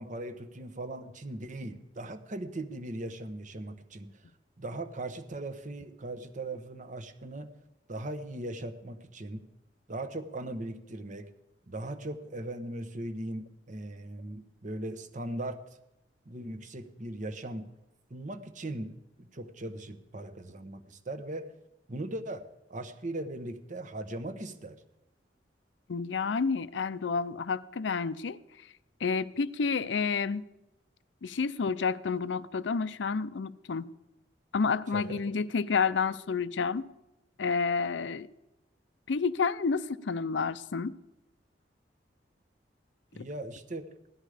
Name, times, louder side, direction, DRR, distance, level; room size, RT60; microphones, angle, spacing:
voice 1, 0.0-4.1 4.6-7.5 7.9-9.4 9.9-11.3 11.7-15.6 16.3-17.7 18.1-21.5 21.9-22.4 22.7-24.8 34.9-35.2 43.1-43.9, right 1 dB, 45° right, 1.0 m, -39 dB
voice 2, 25.9-28.4 29.0-30.5 31.2-33.9 34.5-36.9 37.4-38.3 39.1-41.0 43.2-43.3, left 5 dB, 80° left, 0.5 m, -30 dB
16.5 x 12.5 x 5.0 m
head